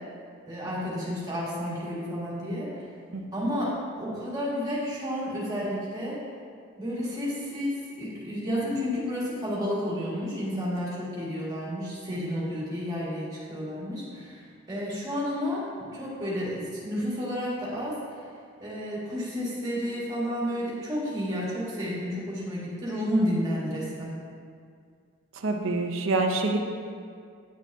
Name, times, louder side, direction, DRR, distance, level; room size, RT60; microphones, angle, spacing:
voice 1, 0.5-2.7 3.3-6.2 6.8-18.2 18.6-24.2, equal, 20° right, -8 dB, 2.0 m, -31 dB
voice 2, 3.1-3.5 25.4-26.6, right 3 dB, 70° right, 4 dB, 0.7 m, -27 dB
10.5 x 6.2 x 2.8 m, 2.2 s
head